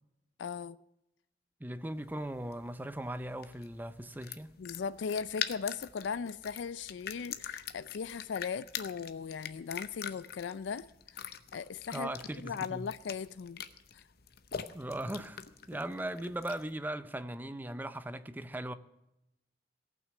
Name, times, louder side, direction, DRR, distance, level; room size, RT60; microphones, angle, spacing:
voice 1, 0.4-0.8 4.6-10.9 11.1-13.6 13.9-14.0, left 6 dB, 90° left, 0.4 m, -38 dB
voice 2, 1.6-4.5 11.9-12.9 14.7-18.7, right 1 dB, 10° right, 0.5 m, -39 dB
sound 1, 1.9-16.8, left 8 dB, 60° left, 0.8 m, -44 dB
17.5 x 6.1 x 7.5 m
head